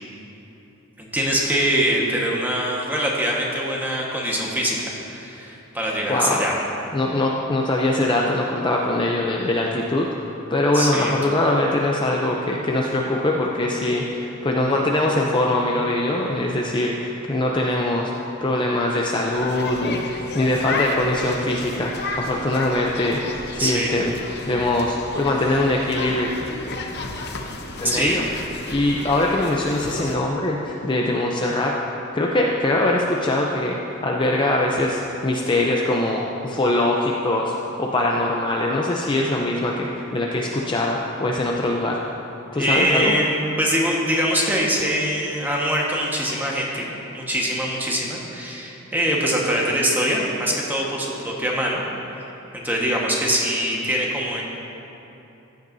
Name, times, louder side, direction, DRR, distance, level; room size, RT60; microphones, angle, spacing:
voice 1, 1.0-6.5 10.7-11.1 23.6-23.9 27.8-28.1 28.7-28.8 42.5-46.9 47.1-51.8 52.5-54.4, equal, 10° right, -3 dB, 1.3 m, -23 dB
voice 2, 6.1-6.4 6.9-24.1 24.5-26.3 27.8-28.3 28.7-31.7 32.1-42.0 42.5-43.2, left 1 dB, 20° left, -1 dB, 0.5 m, -22 dB
sound 1, 19.3-30.2, left 3 dB, 50° left, 0.8 m, -32 dB
14.5 x 10.5 x 2.7 m, 3.0 s
head